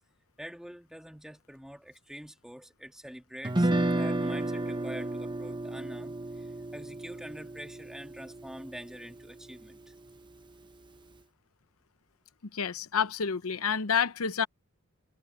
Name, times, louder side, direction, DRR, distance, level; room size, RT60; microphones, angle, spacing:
voice 1, 0.4-9.9, equal, ahead, 1.8 m, -45 dB
Guitar, 3.4-9.6, right 1 dB, 20° right, 0.8 m, -32 dB
voice 2, 12.5-14.5, left 7 dB, 70° left, 0.8 m, -29 dB
head